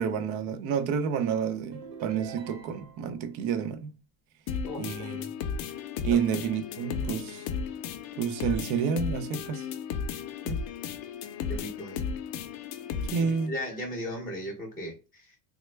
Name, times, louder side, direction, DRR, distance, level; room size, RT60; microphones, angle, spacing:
voice 1, 0.0-3.9 4.8-5.2 6.0-7.5 8.2-9.7 13.1-13.5, right 7 dB, 65° right, 0.7 m, -29 dB
sound 1, 1.7-3.2, right 7 dB, 50° right, 1.0 m, -44 dB
sound 2, 4.5-13.5, left 6 dB, 50° left, 0.5 m, -35 dB
voice 2, 11.5-12.1 13.2-15.4, equal, 10° left, 0.6 m, -37 dB
3.3 x 2.1 x 3.2 m
cardioid pair, 175°, 50 cm